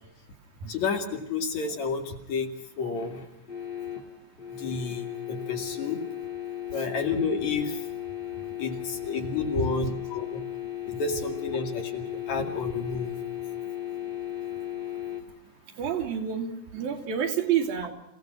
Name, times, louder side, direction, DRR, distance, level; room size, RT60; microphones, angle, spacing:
voice 1, 0.7-2.5 2.8-3.2 4.5-6.0 6.7-7.8 8.6-10.4 10.9-13.1, left 4 dB, 55° left, 4 dB, 3.5 m, -30 dB
sound 1, 2.9-15.2, left 12 dB, 20° left, 1.5 m, -36 dB
voice 2, 15.8-17.9, right 8 dB, 80° right, 3 dB, 4.1 m, -28 dB
28.5 x 17.0 x 6.1 m, 0.86 s
omnidirectional pair, 4.1 m